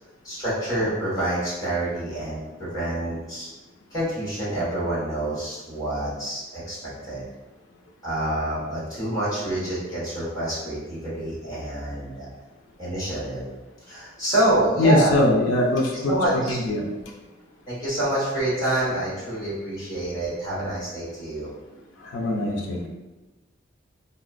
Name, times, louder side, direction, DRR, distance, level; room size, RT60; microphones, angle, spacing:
voice 1, 0.2-3.5 3.9-7.2 8.0-12.3 12.8-13.5 13.9-15.1 16.1-16.6 17.7-21.5, right 1 dB, 20° left, -9 dB, 1.3 m, -27 dB
voice 2, 14.8-16.1 16.5-16.9 22.0-22.9, left 1 dB, 80° left, 0 dB, 0.5 m, -22 dB
3.9 x 2.2 x 2.4 m, 1.1 s
head